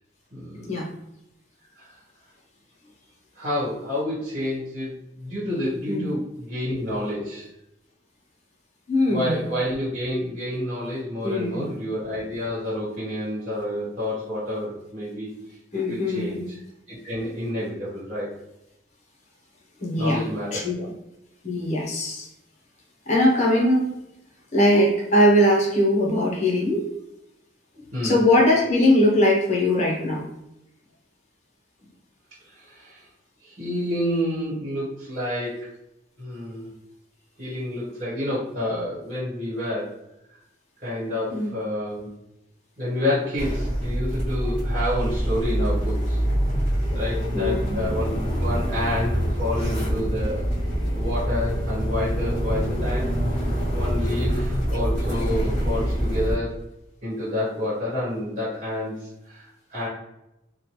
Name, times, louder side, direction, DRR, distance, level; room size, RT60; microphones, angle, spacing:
voice 1, 0.3-0.7 1.7-1.9 3.3-4.9 5.2-7.5 9.1-15.3 15.7-16.6 16.9-18.3 20.0-20.9 27.9-28.2 32.5-33.1 33.4-35.6 36.2-36.7 37.4-39.9 40.8-42.1 42.8-46.2 46.6-50.4 50.9-56.5 57.0-59.9, left 1 dB, 35° right, -9 dB, 1.2 m, -29 dB
voice 2, 8.9-9.4 11.2-11.7 15.7-16.4 19.8-20.2 20.5-20.7 21.4-22.3 23.1-23.9 24.5-26.8 28.0-30.2 41.3-41.5 47.3-47.8, left 1 dB, 35° left, -2 dB, 0.7 m, -20 dB
sound 1, 43.4-56.4, equal, 10° left, 1.5 m, -25 dB
3.1 x 2.2 x 2.9 m, 0.85 s
head